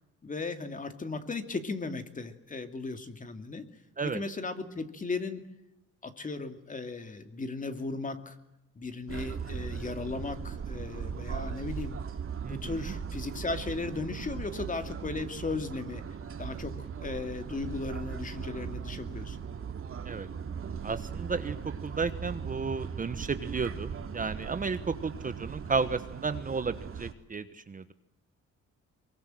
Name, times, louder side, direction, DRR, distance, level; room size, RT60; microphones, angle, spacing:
voice 1, 0.2-3.7 4.0-5.4 6.0-8.4 8.8-11.9 12.5-16.0 16.4-19.4, left 3 dB, 25° left, 8 dB, 2.5 m, -36 dB
sound 1, 9.1-27.1, right 6 dB, 45° right, 2.4 m, -38 dB
voice 2, 20.8-21.6 21.8-27.9, right 4 dB, 25° right, 11 dB, 1.2 m, -33 dB
24.0 x 23.0 x 7.8 m, 0.88 s
cardioid pair, 120°, 30 cm